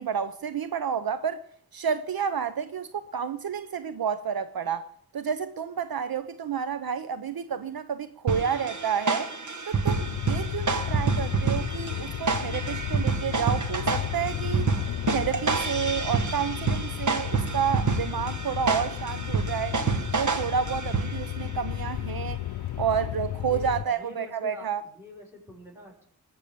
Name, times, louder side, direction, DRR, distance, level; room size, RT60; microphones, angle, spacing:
voice 1, 0.0-1.4 1.7-4.8 5.1-9.3 9.7-14.7 15.1-19.8 20.1-22.4 22.8-24.8, right 7 dB, 70° right, 0.8 m, -30 dB
sound 1, 8.3-21.4, right 4 dB, 50° right, 1.4 m, -28 dB
sound 2, 9.9-23.8, left 12 dB, 90° left, 0.6 m, -34 dB
voice 2, 22.8-26.0, left 2 dB, 5° right, 6.3 m, -46 dB
21.5 x 7.3 x 6.8 m
cardioid pair, 60°, 38 cm